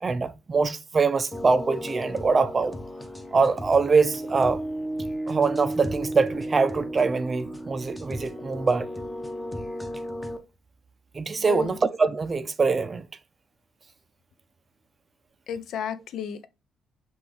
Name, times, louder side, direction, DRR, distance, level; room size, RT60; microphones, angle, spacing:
voice 1, 0.0-2.8 3.3-4.6 5.3-8.9 11.1-13.1, right 4 dB, 35° right, 0.4 m, -23 dB
sound 1, 1.3-10.4, equal, 10° left, 0.7 m, -34 dB
voice 2, 15.5-16.5, left 8 dB, 70° left, 0.4 m, -32 dB
5.9 x 2.4 x 3.3 m
cardioid pair, 90°, 0 cm